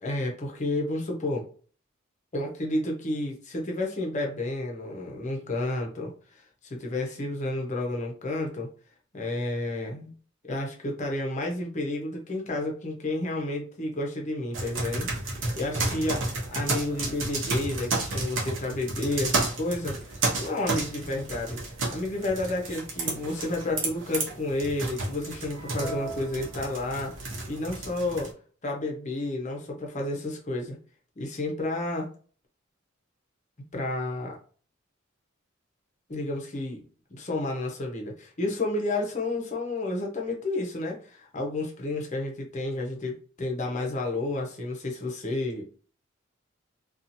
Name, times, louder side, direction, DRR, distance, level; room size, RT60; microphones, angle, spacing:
voice 1, 0.0-1.4 2.3-6.4 6.7-8.7 9.1-10.1 10.4-16.2 16.5-21.6 21.9-28.3 28.6-30.8 31.2-32.1 33.7-34.4 36.1-36.8 37.1-45.6, left 2 dB, 35° left, 1 dB, 0.7 m, -31 dB
sound 1, 14.5-28.3, right 2 dB, 65° right, 0.8 m, -32 dB
2.8 x 2.4 x 2.6 m, 0.42 s
head